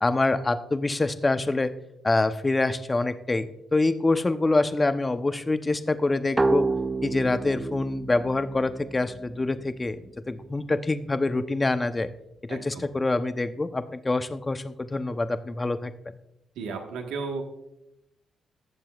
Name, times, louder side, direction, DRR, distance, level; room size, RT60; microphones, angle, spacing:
voice 1, 0.0-1.7 2.0-6.7 7.0-12.1 12.4-15.9, left 2 dB, 25° left, 10 dB, 0.8 m, -25 dB
sound 1, 6.4-9.8, right 3 dB, 25° right, 0.4 m, -29 dB
voice 2, 12.5-12.8 16.6-17.4, right 4 dB, 80° right, 3 dB, 1.4 m, -34 dB
18.5 x 7.4 x 2.4 m, 0.83 s
supercardioid pair, 50°, 0 cm